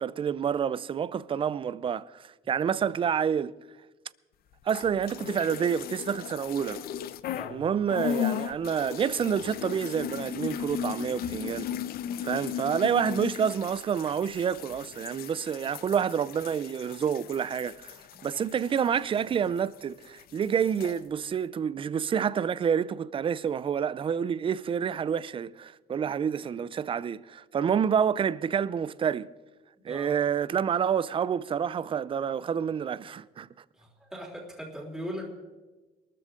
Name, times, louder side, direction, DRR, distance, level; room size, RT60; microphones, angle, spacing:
voice 1, 0.0-3.5 4.6-6.8 7.5-11.7 12.2-29.3 29.8-33.5, right 7 dB, 30° right, 0.5 m, -28 dB
sound 1, 4.6-7.6 7.9-19.8 20.0-21.0, left 9 dB, 65° left, 0.7 m, -36 dB
voice 2, 7.3-7.7 18.1-18.2 29.8-30.2 33.7-35.3, equal, ahead, 3.5 m, -40 dB
22.5 x 13.5 x 3.7 m
cardioid pair, 110°, 17 cm